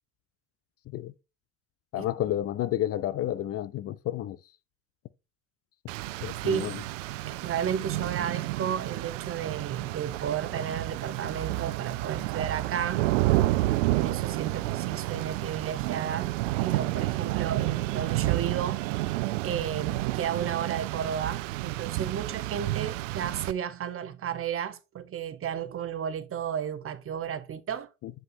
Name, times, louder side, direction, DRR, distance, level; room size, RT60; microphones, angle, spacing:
voice 1, 1.9-4.4 6.2-6.7 28.0-28.1, left 12 dB, 40° left, 0.5 m, -30 dB
Rain, 5.9-23.5, right 17 dB, 75° right, 0.5 m, -30 dB
voice 2, 6.4-6.8 7.3-13.0 13.9-18.8 19.4-27.9, right 8 dB, 35° right, 1.0 m, -33 dB
7.7 x 7.6 x 2.7 m
hypercardioid pair, 70°, 38 cm